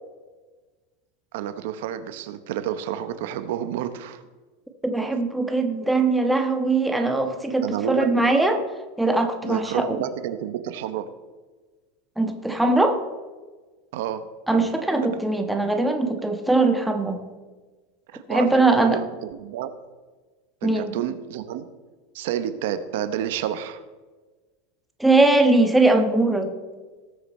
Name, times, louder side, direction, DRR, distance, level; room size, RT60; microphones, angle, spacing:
voice 1, 1.3-4.2 7.6-8.2 9.4-11.1 13.9-14.2 15.1-15.2 18.1-19.7 20.6-21.7 22.1-23.8, right 10 dB, 70° right, 11 dB, 0.9 m, -29 dB
voice 2, 4.8-8.6 9.0-10.0 12.2-13.0 14.5-17.2 18.3-19.0 20.6-20.9 25.0-26.5, right 2 dB, 5° right, 4 dB, 1.2 m, -21 dB
18.5 x 6.7 x 4.3 m, 1.3 s
supercardioid pair, 145°, 0 cm